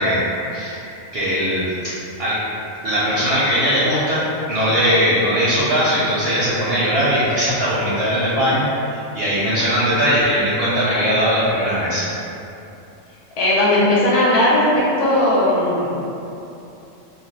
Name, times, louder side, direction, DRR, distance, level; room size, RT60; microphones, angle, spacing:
voice 1, 0.0-2.4 2.8-4.2 4.5-12.1, equal, 60° right, -10 dB, 0.7 m, -20 dB
voice 2, 13.4-16.0, left 1 dB, 55° left, -8 dB, 0.4 m, -17 dB
2.3 x 2.2 x 3.9 m, 2.8 s
omnidirectional pair, 1.3 m